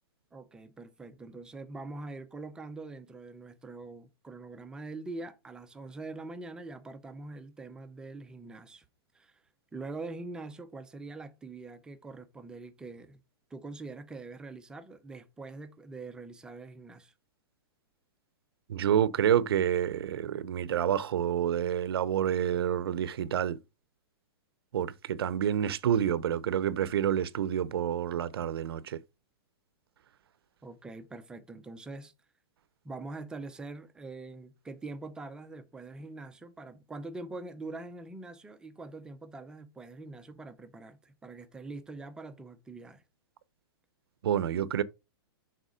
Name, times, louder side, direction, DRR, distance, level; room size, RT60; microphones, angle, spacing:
voice 1, 0.3-8.8 9.1-9.4 9.7-13.2 13.5-17.1 30.6-32.1 32.8-43.0, right 3 dB, 5° right, 0.6 m, -44 dB
voice 2, 18.7-23.6 24.7-29.0 44.2-44.8, right 9 dB, 70° right, 0.7 m, -28 dB
6.7 x 4.1 x 5.0 m
hypercardioid pair, 165°, 13 cm